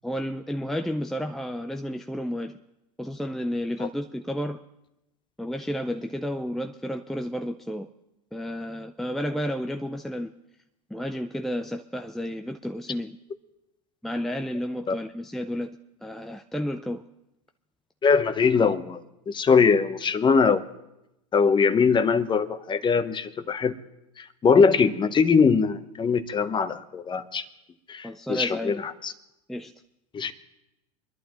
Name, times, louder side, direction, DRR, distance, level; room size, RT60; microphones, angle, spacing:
voice 1, 0.0-2.6 3.0-4.6 5.4-7.9 8.3-10.3 10.9-13.2 14.0-15.7 16.0-17.0 28.0-28.7 29.5-29.7, equal, ahead, 6 dB, 0.5 m, -31 dB
voice 2, 18.0-19.0 19.3-20.7 21.3-23.8 24.2-27.4 27.9-29.1 30.1-30.3, left 5 dB, 25° left, 12 dB, 0.9 m, -22 dB
25.0 x 11.5 x 3.1 m, 0.90 s
hypercardioid pair, 95°, 19 cm